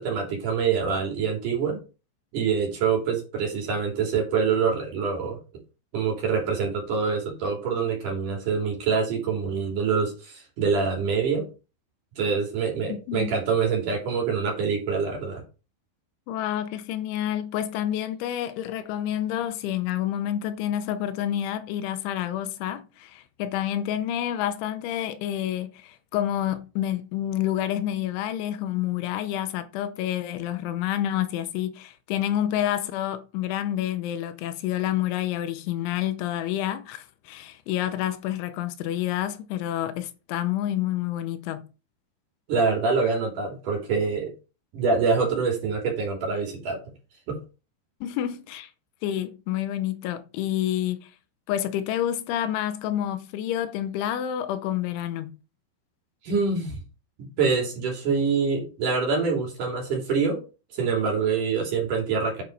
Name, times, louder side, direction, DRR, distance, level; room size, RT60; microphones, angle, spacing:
voice 1, 0.0-1.8 2.3-5.4 5.9-11.5 12.2-15.4 42.5-44.3 44.7-46.8 47.3-47.4 56.2-56.8 57.2-60.4 60.7-62.4, right 5 dB, 45° right, 4.1 m, -25 dB
voice 2, 12.9-13.4 16.3-41.7 48.0-48.7 49.0-51.1 51.5-55.4, left 11 dB, 85° left, 3.2 m, -28 dB
9.4 x 6.3 x 4.5 m
omnidirectional pair, 5.4 m